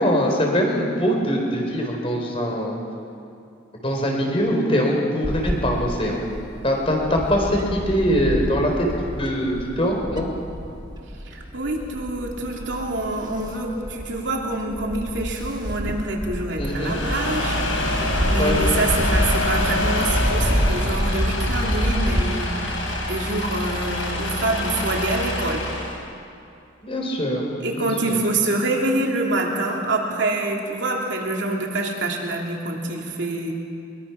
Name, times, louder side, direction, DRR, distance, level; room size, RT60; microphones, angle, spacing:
voice 1, 0.0-2.8 3.8-6.2 6.6-8.7 9.2-10.3 16.6-17.0 18.4-18.6 26.8-27.4 27.8-28.2, equal, 30° left, 0 dB, 4.0 m, -22 dB
Bird / Wind, 5.2-22.2, equal, 20° right, 1.4 m, -28 dB
voice 2, 11.3-17.6 17.9-22.5 23.1-25.6 27.6-33.5, right 2 dB, 60° right, 0 dB, 3.0 m, -26 dB
sound 1, 16.7-26.0, left 1 dB, 75° left, 4.8 m, -25 dB
23.0 x 22.5 x 6.0 m, 2.6 s
head